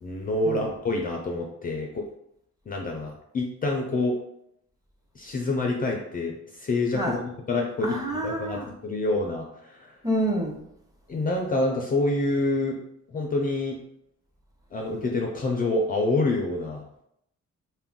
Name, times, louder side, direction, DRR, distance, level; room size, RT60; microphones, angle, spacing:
voice 1, 0.0-2.0 2.7-4.2 5.2-9.9 11.1-12.8 13.1-13.8 14.7-16.8, left 2 dB, 30° left, 1 dB, 0.4 m, -27 dB
voice 2, 7.8-8.7 10.0-10.6, right 1 dB, 10° right, 0 dB, 0.6 m, -28 dB
2.3 x 2.1 x 3.5 m, 0.76 s
cardioid pair, 90°, 30 cm